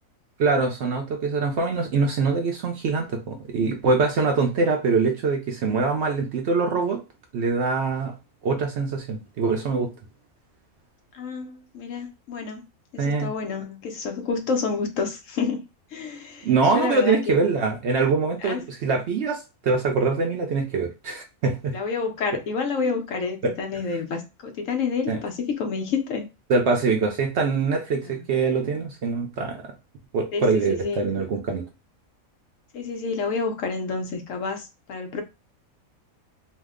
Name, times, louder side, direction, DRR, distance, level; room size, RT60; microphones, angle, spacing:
voice 1, 0.4-7.0 7.3-8.1 8.4-9.9 13.0-13.3 16.4-21.8 23.4-23.5 25.1-25.2 26.5-29.7 30.1-31.6, right 4 dB, 65° right, 0.7 m, -23 dB
voice 2, 11.1-12.6 12.9-15.6 15.9-16.5 16.7-17.4 18.4-18.6 21.7-26.3 28.0-28.2 30.3-31.3 32.7-35.2, left 4 dB, 70° left, 1.0 m, -29 dB
2.8 x 2.0 x 3.5 m
omnidirectional pair, 1.5 m